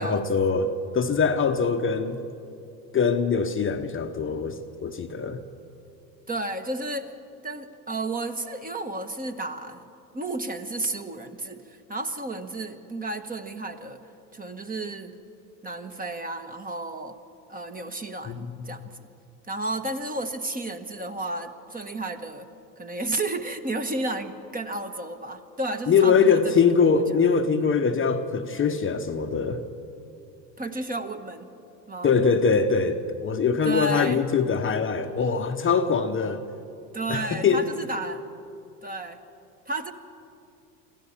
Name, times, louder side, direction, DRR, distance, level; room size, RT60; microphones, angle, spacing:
voice 1, 0.0-2.2 2.9-5.4 18.3-18.7 25.9-29.6 32.0-36.4 37.1-37.7, left 5 dB, 25° left, 6 dB, 1.0 m, -23 dB
voice 2, 6.3-7.1 7.4-9.8 10.1-14.0 14.3-15.1 15.6-17.2 17.5-19.1 19.5-22.5 22.8-26.5 26.9-27.0 30.6-31.5 31.9-32.1 33.6-34.2 36.9-38.2 38.8-39.2 39.7-39.9, right 2 dB, 15° right, 8 dB, 1.3 m, -32 dB
25.0 x 15.0 x 7.3 m, 2.7 s
hypercardioid pair, 90°, 50 cm